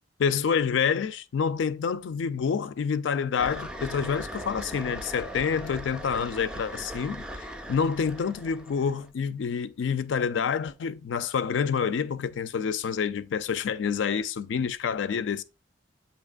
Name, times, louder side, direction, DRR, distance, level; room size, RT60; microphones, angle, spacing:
voice 1, 0.2-7.3 7.7-15.4, left 6 dB, 80° left, 0.4 m, -27 dB
sound 1, 3.4-9.1, equal, 5° right, 0.3 m, -39 dB
7.2 x 2.8 x 2.4 m
head